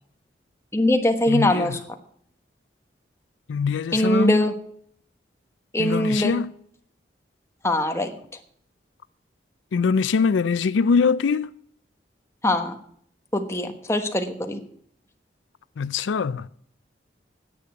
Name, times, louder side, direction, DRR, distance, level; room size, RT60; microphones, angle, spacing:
voice 1, 0.7-1.8 3.9-4.5 5.7-6.3 7.6-8.1 12.4-12.8 13.3-14.6, left 1 dB, 15° left, 1.2 m, -22 dB
voice 2, 1.3-1.7 3.5-4.5 5.8-6.5 9.7-11.5 15.8-16.5, left 5 dB, 85° left, 0.4 m, -23 dB
10.0 x 8.5 x 8.1 m
head